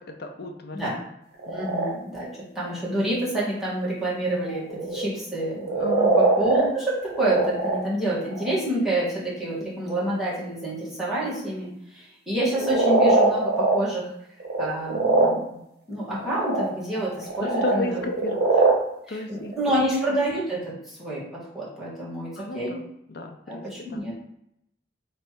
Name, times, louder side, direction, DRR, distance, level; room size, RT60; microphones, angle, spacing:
voice 1, 0.1-0.8 1.5-1.6 5.8-6.1 17.4-18.5 19.1-19.5 22.4-22.8 23.1-23.6 23.9-24.1, left 1 dB, 60° left, 3 dB, 0.5 m, -33 dB
sound 1, 1.4-1.9 2.4-2.5 4.5-5.1 5.4-6.7 6.9-7.8 8.2-8.5 9.5-9.6 12.5-13.9 14.4-15.3 16.0-16.7 16.9-18.7 19.3-19.5, right 2 dB, 55° right, 1.1 m, -22 dB
voice 2, 1.5-2.3 2.5-14.1 14.6-15.6 15.9-18.0 19.1-21.2 21.5-22.8 23.5-24.1, right 1 dB, ahead, -9 dB, 1.7 m, -28 dB
3.3 x 3.1 x 4.5 m, 0.77 s
head